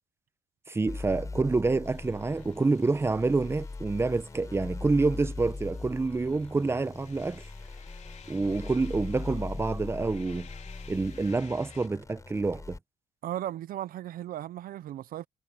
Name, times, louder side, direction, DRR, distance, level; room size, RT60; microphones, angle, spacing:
voice 1, 0.7-7.5 8.3-10.5 10.9-12.8, right 3 dB, 15° right, 0.9 m, -28 dB
sound 1, 0.9-12.8, left 3 dB, 20° left, 6.4 m, -40 dB
sound 2, 1.8-11.9, left 7 dB, 45° left, 3.9 m, -56 dB
voice 2, 13.2-15.3, right 12 dB, 60° right, 0.6 m, -36 dB
cardioid pair, 110°, 17 cm